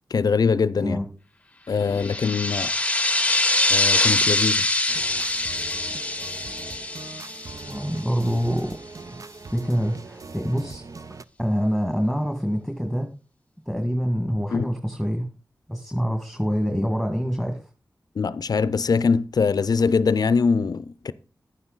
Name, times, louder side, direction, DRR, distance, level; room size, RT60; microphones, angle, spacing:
voice 1, 0.1-1.0 1.7-2.7 3.7-4.7 14.5-14.7 18.2-21.1, left 5 dB, 70° left, 0.5 m, -22 dB
sound 1, 2.0-8.3, left 2 dB, 20° left, 0.8 m, -24 dB
sound 2, 4.9-11.2, right 4 dB, 55° right, 0.6 m, -41 dB
voice 2, 7.7-8.8 9.5-10.8 11.4-13.1 13.7-15.3 15.7-17.6, equal, 5° right, 1.9 m, -25 dB
11.5 x 9.7 x 4.0 m
cardioid pair, 45°, 7 cm